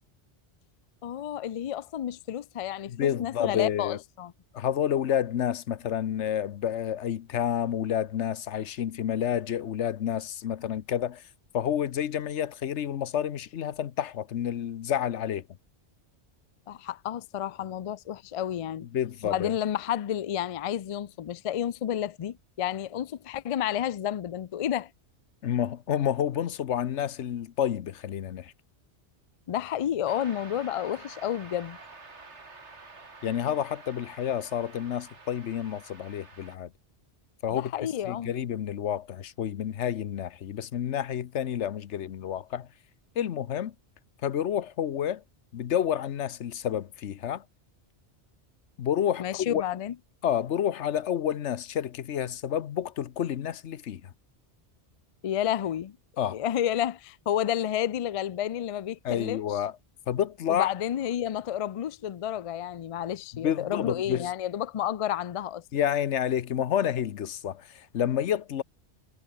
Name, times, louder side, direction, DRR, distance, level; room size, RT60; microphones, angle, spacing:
voice 1, 1.0-4.3 16.7-18.9 19.2-24.9 29.5-31.8 37.5-38.3 49.2-49.9 55.2-56.0 56.3-59.6 60.5-65.6, left 10 dB, 65° left, 0.3 m, -31 dB
voice 2, 2.9-4.0 4.5-11.2 11.5-15.5 18.9-19.5 25.4-28.5 33.2-36.7 37.4-42.7 43.2-43.7 44.2-45.2 45.5-47.4 48.8-49.6 50.2-54.1 56.2-56.4 59.0-59.7 60.1-60.7 63.3-64.3 65.7-68.6, left 9 dB, 80° left, 1.1 m, -29 dB
sound 1, 30.1-36.6, right 3 dB, 80° right, 3.1 m, -49 dB
omnidirectional pair, 1.2 m